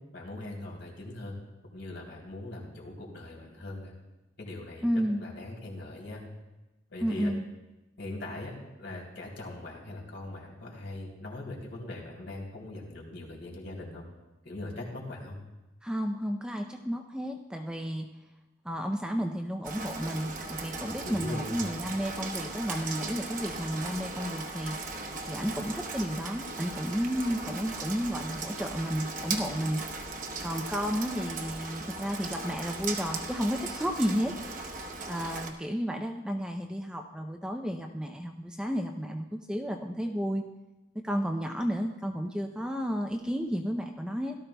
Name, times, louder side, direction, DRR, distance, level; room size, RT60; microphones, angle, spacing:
voice 1, 0.1-1.3 1.7-3.9 4.4-4.9 5.2-6.2 6.9-7.3 8.0-14.1 14.4-15.4 20.8-21.6, left 2 dB, 65° left, -2 dB, 3.2 m, -41 dB
voice 2, 4.8-5.2 7.0-7.4 15.8-18.1 18.6-24.8 25.3-29.8 30.4-40.4 41.0-44.4, equal, 5° right, 3 dB, 0.5 m, -32 dB
Rain, 19.6-35.5, right 3 dB, 40° right, 0.9 m, -38 dB
17.0 x 13.0 x 2.3 m, 1.0 s
head